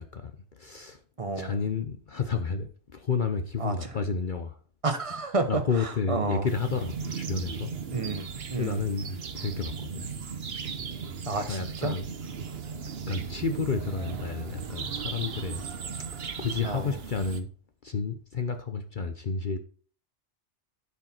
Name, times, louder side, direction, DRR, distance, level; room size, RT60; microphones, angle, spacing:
voice 1, 0.0-1.0 1.3-2.7 2.9-4.6 5.5-7.7 8.6-10.1 11.2-12.1 13.1-15.6 16.4-17.5 17.8-19.6, left 5 dB, 50° left, 0.9 m, -31 dB
voice 2, 1.2-1.6 3.6-3.7 4.8-5.6 6.1-6.5 7.9-8.8 11.2-11.9 16.6-16.9, right 3 dB, 30° right, 1.2 m, -30 dB
sound 1, 6.5-17.4, right 6 dB, 60° right, 1.2 m, -37 dB
10.5 x 6.5 x 4.4 m
omnidirectional pair, 1.2 m